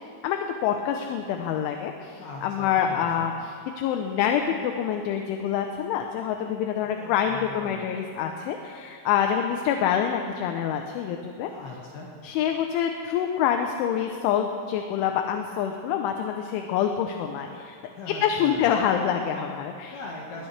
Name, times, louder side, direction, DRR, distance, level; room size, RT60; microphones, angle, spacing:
voice 1, 0.2-11.5 12.2-17.8 18.2-20.0, left 8 dB, 80° left, 4 dB, 3.0 m, -26 dB
voice 2, 2.2-3.3 6.8-7.8 11.5-12.2 18.0-18.7 19.9-20.5, left 3 dB, 65° left, -3 dB, 3.1 m, -40 dB
21.5 x 19.0 x 3.3 m, 2.4 s
omnidirectional pair, 5.8 m